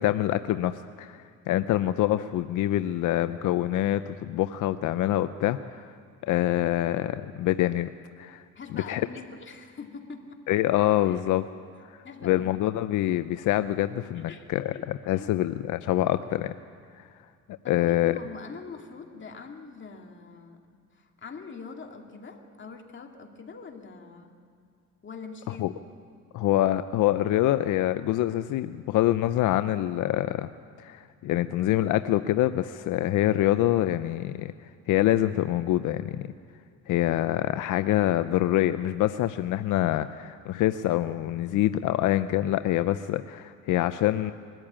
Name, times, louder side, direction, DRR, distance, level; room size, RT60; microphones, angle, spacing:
voice 1, 0.0-5.9 6.2-7.9 8.2-8.4 8.7-9.1 10.5-11.5 12.2-16.5 17.0-17.1 17.7-18.2 25.6-25.7 26.3-30.5 30.8-34.5 34.9-36.3 36.9-44.3, left 14 dB, 85° left, 11 dB, 0.6 m, -25 dB
voice 2, 8.5-10.4 11.1-11.2 12.0-12.6 14.2-14.9 15.2-15.3 17.6-20.6 20.9-24.4 25.0-25.8, left 5 dB, 40° left, 2 dB, 2.5 m, -43 dB
22.0 x 14.0 x 8.7 m, 2.3 s
cardioid pair, 90°, 30 cm